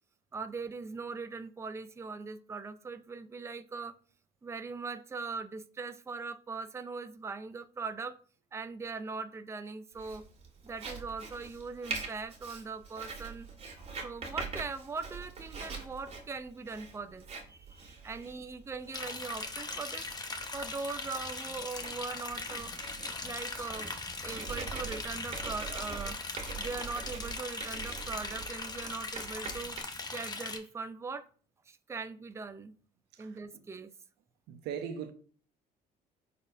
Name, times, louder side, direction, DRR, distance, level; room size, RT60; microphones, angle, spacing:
voice 1, 0.3-3.9 4.4-8.2 8.5-10.2 10.6-13.5 14.0-20.1 20.5-22.7 23.2-23.9 24.2-26.2 26.6-29.8 30.1-31.3 31.7-32.7 33.2-33.9, right 4 dB, 15° right, 0.5 m, -40 dB
Writing, 10.0-29.8, right 4 dB, 40° right, 1.9 m, -44 dB
Liquid, 18.9-30.6, left 3 dB, 25° left, 1.0 m, -40 dB
voice 2, 34.5-35.1, right 7 dB, 90° right, 0.8 m, -39 dB
10.5 x 4.2 x 2.6 m
cardioid pair, 110°, 17 cm